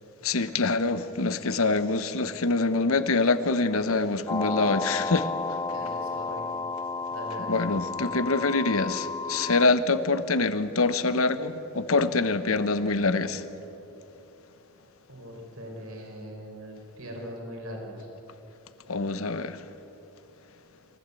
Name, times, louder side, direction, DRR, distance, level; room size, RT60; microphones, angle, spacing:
voice 1, 0.2-5.6 7.5-13.4 18.9-19.6, left 3 dB, 65° left, 1.0 m, -25 dB
sound 1, 4.3-9.7, left 3 dB, 15° left, 0.4 m, -32 dB
voice 2, 5.7-6.6 7.1-7.6 15.1-18.1, equal, 70° right, 4.9 m, -40 dB
25.0 x 15.0 x 8.4 m
head